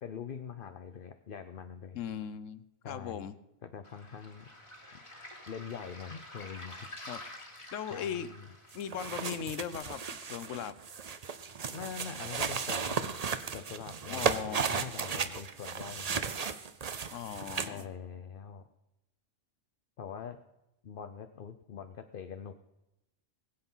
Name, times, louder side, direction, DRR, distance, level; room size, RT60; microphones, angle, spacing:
voice 1, 0.0-2.0 2.8-3.3 3.6-4.5 5.5-6.9 7.9-8.5 11.7-13.2 13.5-16.3 17.7-18.6 20.0-20.4 20.8-22.5, left 7 dB, 50° left, 9 dB, 0.8 m, -43 dB
voice 2, 1.9-3.3 7.1-7.2 7.7-8.3 8.7-10.7 14.1-14.7 17.1-17.9, left 8 dB, 80° left, 15 dB, 1.1 m, -38 dB
Waves surf, 3.8-9.8, left 1 dB, 25° left, 2.3 m, -49 dB
sound 1, 8.7-17.8, right 6 dB, 40° right, 0.7 m, -35 dB
20.5 x 8.2 x 5.6 m, 0.91 s
omnidirectional pair, 1.3 m